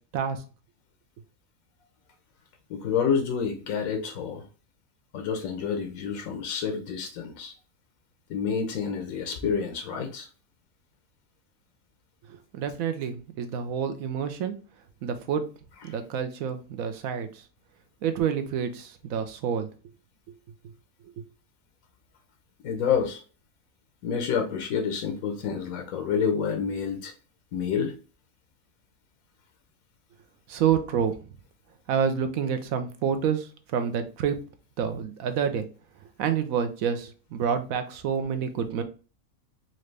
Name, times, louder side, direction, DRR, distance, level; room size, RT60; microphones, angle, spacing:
voice 1, 2.7-4.4 5.1-7.5 8.3-10.3 22.6-23.2 24.0-27.1 27.5-27.9, left 6 dB, 80° left, 4 dB, 1.2 m, -28 dB
voice 2, 12.5-14.5 15.0-15.5 15.8-17.3 18.0-19.7 30.5-31.2 31.9-34.4 34.8-35.7 36.2-38.8, right 7 dB, 75° right, 8 dB, 1.1 m, -28 dB
4.2 x 2.6 x 3.2 m, 0.36 s
omnidirectional pair, 1.5 m